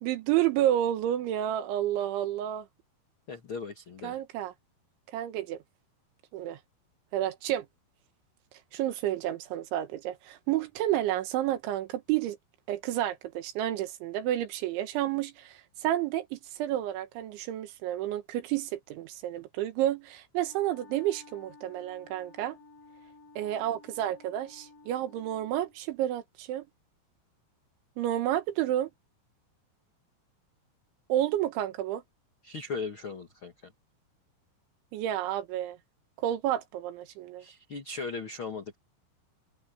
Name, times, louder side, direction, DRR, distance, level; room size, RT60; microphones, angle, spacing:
voice 1, 0.0-2.7 4.0-4.5 5.1-5.6 6.3-6.6 7.1-7.7 8.7-12.4 12.7-22.6 23.4-26.7 28.0-28.9 31.1-32.0 34.9-35.8 36.2-37.4, right 12 dB, 85° right, 3.8 m, -30 dB
voice 2, 3.3-4.2 32.4-33.7 37.4-38.7, left 4 dB, 80° left, 1.1 m, -38 dB
Wind instrument woodwind instrument, 20.4-25.8, left 3 dB, 50° left, 8.5 m, -54 dB
omnidirectional pair, 5.2 m